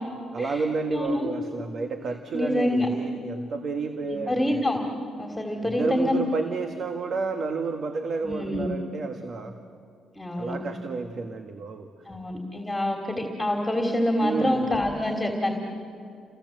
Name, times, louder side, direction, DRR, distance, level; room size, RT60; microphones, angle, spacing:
voice 1, 0.3-4.6 5.6-9.6 10.3-11.9 14.2-14.7, right 4 dB, 55° right, 6 dB, 1.6 m, -31 dB
voice 2, 0.9-1.3 2.3-2.9 4.0-4.8 5.2-6.2 8.2-8.7 10.1-10.6 12.1-15.5, left 1 dB, 10° left, 2 dB, 3.2 m, -26 dB
29.5 x 24.0 x 7.9 m, 2.5 s
cardioid pair, 90°, 0 cm